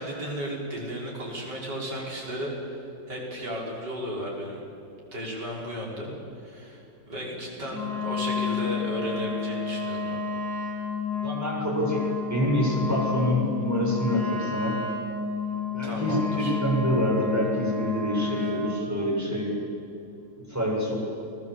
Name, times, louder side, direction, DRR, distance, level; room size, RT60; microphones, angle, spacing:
voice 1, 0.0-2.8 3.1-4.6 5.1-6.1 6.4-10.2 15.8-16.6, equal, 65° right, -3 dB, 6.3 m, -34 dB
Wind instrument woodwind instrument, 7.7-18.7, left 5 dB, 55° left, 8.2 m, -31 dB
voice 2, 11.2-14.8 15.7-19.6 20.4-21.0, equal, 10° right, -3 dB, 7.0 m, -26 dB
29.0 x 19.0 x 8.3 m, 2.8 s
omnidirectional pair, 2.0 m